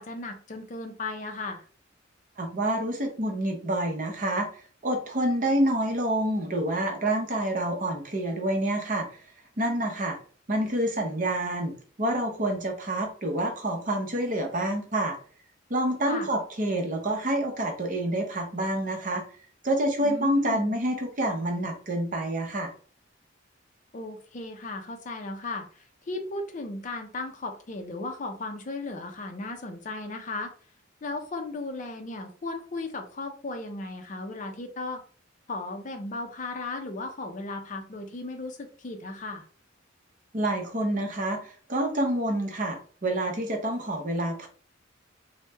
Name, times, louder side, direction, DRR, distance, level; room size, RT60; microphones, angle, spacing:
voice 1, 0.0-1.6 16.1-16.3 20.0-20.7 23.9-30.5 31.0-35.0 35.5-39.5, left 2 dB, 40° left, 5 dB, 0.4 m, -36 dB
voice 2, 2.4-4.5 4.8-9.1 9.6-10.2 10.5-15.2 15.7-19.2 19.6-22.7 40.3-44.5, right 1 dB, 40° right, 2 dB, 0.7 m, -27 dB
3.1 x 2.1 x 3.2 m, 0.43 s
head